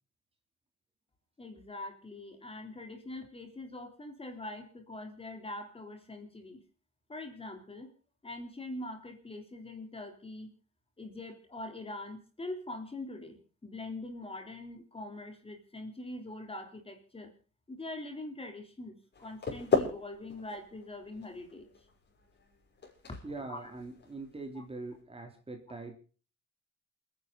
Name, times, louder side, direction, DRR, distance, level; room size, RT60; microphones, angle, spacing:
voice 1, 1.4-6.6 7.1-7.9 8.2-10.6 11.0-17.3 17.7-21.7 23.1-23.7 24.6-24.7, left 2 dB, 20° left, 4 dB, 3.7 m, -43 dB
sound 1, 19.1-25.0, left 5 dB, 35° left, 6.4 m, -36 dB
voice 2, 23.2-26.0, right 3 dB, 20° right, 4 dB, 3.4 m, -43 dB
28.5 x 10.5 x 4.1 m, 0.38 s
cardioid pair, 120°, 29 cm